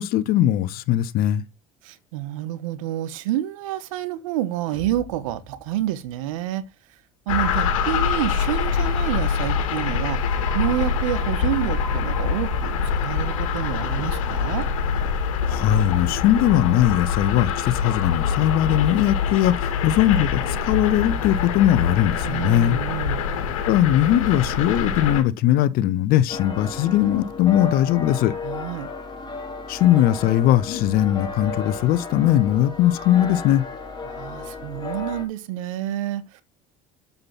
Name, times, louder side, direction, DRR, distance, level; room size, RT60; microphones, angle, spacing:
voice 1, 0.0-1.4 15.5-22.8 23.7-28.3 29.7-33.6, left 12 dB, 65° left, 1.2 m, -20 dB
voice 2, 1.8-6.6 7.3-10.2 10.5-12.7 13.0-14.7 22.2-23.2 28.4-28.9 34.0-36.4, right 13 dB, 80° right, 1.4 m, -28 dB
sound 1, 4.6-6.7, equal, 30° right, 4.9 m, -45 dB
sound 2, 7.3-25.2, left 6 dB, 85° left, 2.2 m, -24 dB
sound 3, 26.3-35.2, left 4 dB, 25° left, 3.8 m, -34 dB
7.8 x 7.2 x 5.9 m
hypercardioid pair, 80°, 17 cm